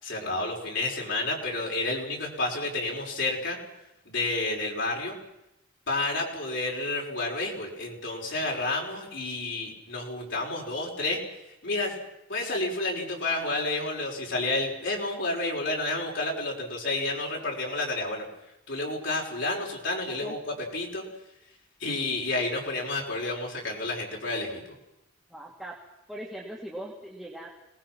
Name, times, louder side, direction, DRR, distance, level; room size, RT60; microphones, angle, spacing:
voice 1, 0.0-3.6 4.1-5.2 5.9-11.2 11.6-11.9 12.3-18.2 18.7-20.4 20.7-21.0 21.8-24.6, left 2 dB, 55° left, -2 dB, 5.6 m, -30 dB
voice 2, 25.3-25.8 26.1-27.5, right 1 dB, ahead, -4 dB, 2.3 m, -40 dB
26.0 x 19.5 x 6.1 m, 0.88 s
head